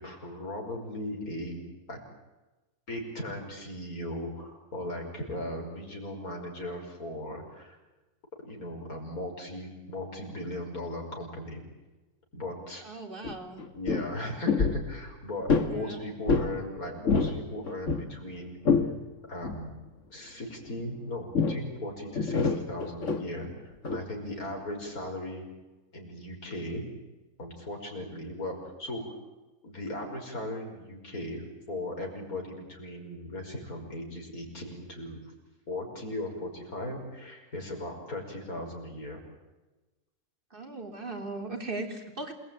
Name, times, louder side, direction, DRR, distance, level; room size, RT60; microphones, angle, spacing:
voice 1, 0.0-1.6 1.9-2.0 2.9-7.8 8.4-11.6 12.3-12.8 13.7-18.6 19.3-19.7 20.1-25.5 25.9-26.8 27.4-29.2 29.6-35.2 35.7-39.2, left 1 dB, 75° left, 1 dB, 5.9 m, -37 dB
voice 2, 12.8-13.6 15.6-16.0 40.5-42.3, right 2 dB, 35° right, 5 dB, 3.4 m, -38 dB
sound 1, 13.2-13.3 13.6-14.1 14.5-14.9 15.5-15.7 16.3-16.5 16.9-17.4 17.6-18.9 19.4-19.6 21.3-21.7 22.1-23.2 23.8-24.0, left 5 dB, 55° left, 2.0 m, -26 dB
27.5 x 20.0 x 9.1 m, 1.1 s
omnidirectional pair, 1.6 m